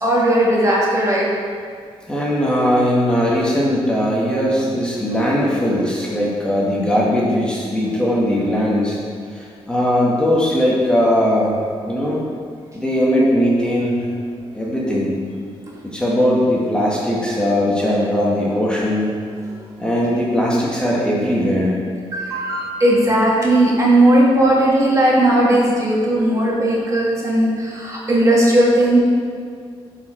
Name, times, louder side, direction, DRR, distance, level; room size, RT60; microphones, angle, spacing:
voice 1, 0.0-1.3 5.0-5.2 15.6-15.7 22.1-29.0, right 1 dB, 30° right, -4 dB, 1.8 m, -16 dB
voice 2, 2.1-9.0 9.3-12.2 12.7-14.0 14.5-15.2 15.9-19.2 19.8-21.8, equal, 10° left, -6 dB, 1.5 m, -19 dB
11.0 x 4.9 x 4.4 m, 2.1 s
wide cardioid pair, 120°, 10 cm